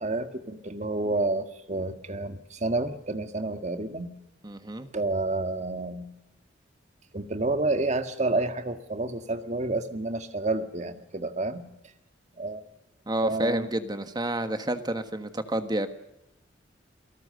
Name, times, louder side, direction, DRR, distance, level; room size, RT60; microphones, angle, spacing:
voice 1, 0.0-4.1 4.9-6.1 7.1-11.7 12.4-12.6 13.2-13.7, right 2 dB, 35° right, 8 dB, 1.8 m, -29 dB
voice 2, 4.4-4.9 13.1-15.9, right 1 dB, 20° right, 9 dB, 1.5 m, -29 dB
28.5 x 18.0 x 6.7 m, 0.89 s
head